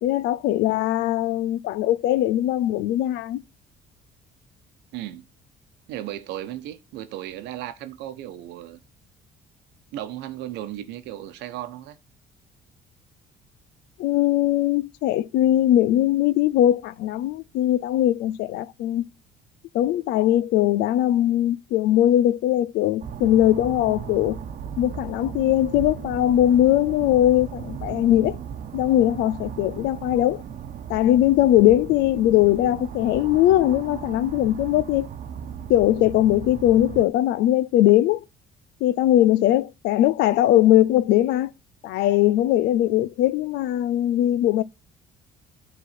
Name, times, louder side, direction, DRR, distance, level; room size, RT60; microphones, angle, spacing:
voice 1, 0.0-3.4 14.0-19.1 19.7-24.4 24.8-28.4 28.7-30.4 30.9-35.1 35.7-38.2 38.8-41.5 41.8-44.6, left 13 dB, 80° left, 0.5 m, -20 dB
voice 2, 4.9-5.3 5.9-8.8 9.9-12.0, right 12 dB, 90° right, 1.0 m, -35 dB
sound 1, 23.0-37.1, right 8 dB, 50° right, 1.0 m, -36 dB
10.0 x 4.1 x 5.7 m
cardioid pair, 110°, 17 cm